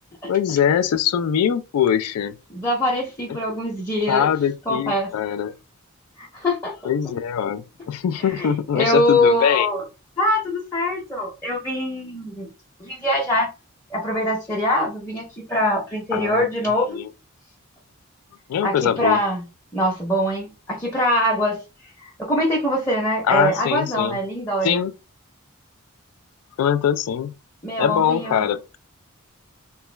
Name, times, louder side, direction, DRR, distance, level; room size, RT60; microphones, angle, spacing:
voice 1, 0.3-2.3 4.1-5.5 6.8-9.7 16.1-16.5 16.9-17.1 18.5-19.2 23.3-24.2 24.6-24.9 26.6-27.3 27.8-28.6, left 8 dB, 85° left, 0.3 m, -22 dB
voice 2, 2.5-4.3 4.7-5.1 6.2-6.7 8.2-8.5 8.7-9.8 10.2-12.5 12.8-13.5 13.9-17.0 18.6-19.4 19.7-21.6 22.0-24.8 27.6-28.5, left 1 dB, 10° left, 0.7 m, -23 dB
3.0 x 2.2 x 3.2 m
head